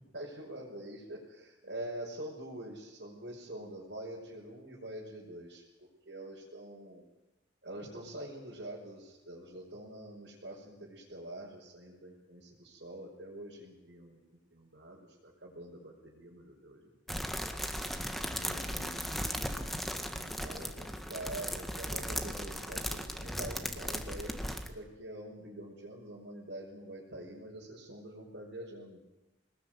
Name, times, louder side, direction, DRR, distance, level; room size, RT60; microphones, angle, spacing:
voice 1, 0.1-7.0 7.6-14.2 14.5-17.3 18.2-24.3 24.7-29.0, right 1 dB, 75° right, -5 dB, 5.8 m, -46 dB
sound 1, 17.1-24.7, equal, ahead, 1.7 m, -37 dB
23.5 x 20.0 x 9.4 m, 0.96 s
head